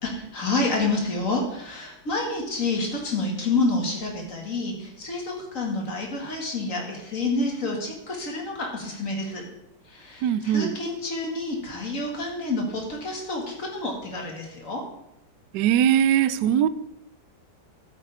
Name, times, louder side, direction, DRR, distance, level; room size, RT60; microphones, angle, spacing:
voice 1, 0.0-9.4 9.9-14.8, left 2 dB, 40° left, 2.4 m, -28 dB
voice 2, 10.2-10.8 15.5-16.7, right 10 dB, 75° right, 1.0 m, -21 dB
12.0 x 8.8 x 3.6 m
omnidirectional pair, 2.1 m